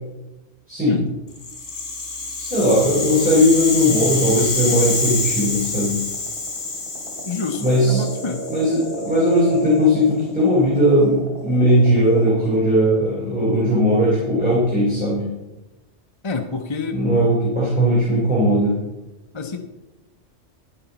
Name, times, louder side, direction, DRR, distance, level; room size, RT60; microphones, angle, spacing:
Rattle (instrument), 1.4-9.6, left 3 dB, 70° left, 2.4 m, -27 dB
voice 1, 2.4-6.0 7.6-8.0 8.5-15.2 16.9-18.8, equal, 5° right, -8 dB, 3.4 m, -18 dB
sound 1, 3.6-12.5, equal, 55° right, 3.1 m, -33 dB
voice 2, 7.2-8.4 16.2-17.0 19.3-19.6, left 3 dB, 30° left, 4 dB, 0.7 m, -27 dB
11.5 x 10.0 x 4.0 m, 1.0 s
omnidirectional pair, 1.3 m